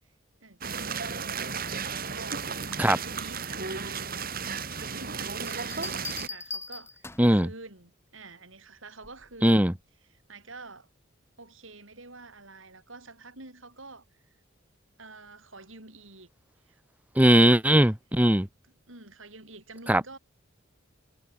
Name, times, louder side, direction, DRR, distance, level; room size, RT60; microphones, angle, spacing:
voice 1, 0.4-4.3 4.7-9.8 10.3-10.9 11.4-14.0 15.0-16.3 16.7-16.8 18.9-20.2, right 3 dB, 75° right, 7.9 m, -48 dB
sound 1, 0.6-6.3, right 5 dB, 45° right, 7.8 m, -34 dB
Bell, 5.5-7.4 9.0-9.4, left 3 dB, 10° left, 4.3 m, -40 dB
voice 2, 7.2-7.5 9.4-9.7 17.2-18.5 19.9-20.0, equal, 5° right, 1.8 m, -19 dB
head